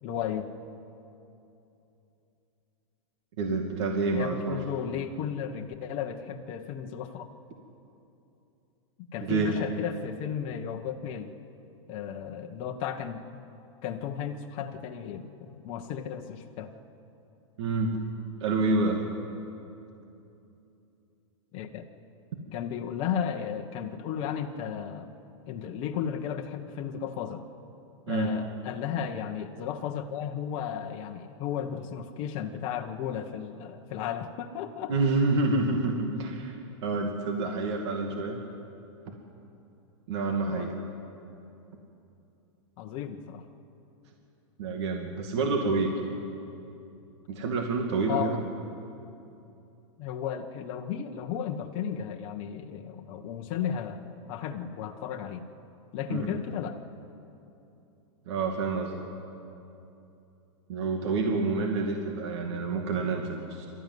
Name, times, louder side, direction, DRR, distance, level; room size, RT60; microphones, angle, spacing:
voice 1, 0.0-0.5 4.1-7.3 9.1-11.3 11.9-13.4 13.8-16.7 21.5-21.9 22.5-25.1 25.5-27.4 28.1-34.9 40.5-40.7 42.8-43.4 48.1-48.3 50.0-55.5 55.9-56.8, left 8 dB, 35° left, 3 dB, 1.3 m, -34 dB
voice 2, 3.4-4.6 9.2-9.6 17.6-18.0 18.4-19.0 28.1-28.5 34.9-38.4 40.1-40.7 44.6-46.0 47.3-48.4 56.1-56.4 58.3-59.0 60.7-63.7, right 3 dB, 55° right, 2 dB, 2.4 m, -28 dB
26.0 x 14.0 x 9.5 m, 2.8 s
supercardioid pair, 155°, 17 cm